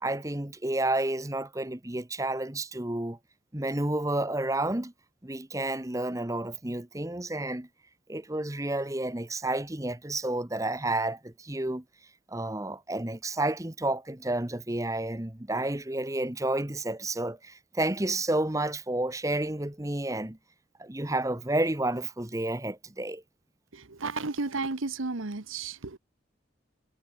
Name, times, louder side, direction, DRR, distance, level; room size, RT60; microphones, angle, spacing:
voice 1, 0.0-3.2 3.5-4.9 5.2-7.7 8.1-11.8 12.3-20.4 20.8-23.2, right 2 dB, 15° right, 1.0 m, -30 dB
voice 2, 23.7-26.0, right 3 dB, 90° right, 1.3 m, -33 dB
head